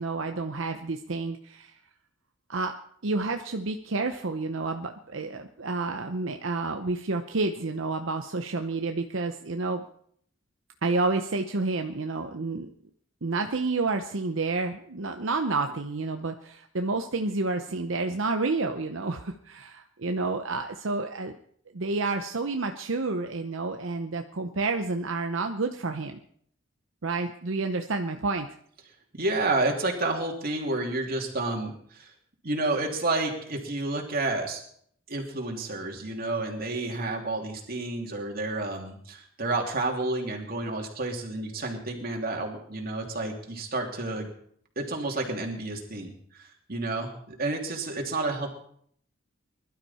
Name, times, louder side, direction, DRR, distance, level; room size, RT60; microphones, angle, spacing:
voice 1, 0.0-1.8 2.5-2.8 3.0-9.8 10.8-12.7 13.2-21.4 21.7-26.2 27.0-28.5, right 3 dB, 70° right, 6 dB, 0.8 m, -29 dB
voice 2, 29.1-32.1 32.4-34.6 35.1-44.3 44.8-48.5, right 2 dB, 50° right, 1 dB, 2.8 m, -30 dB
21.0 x 12.0 x 4.3 m, 0.63 s
head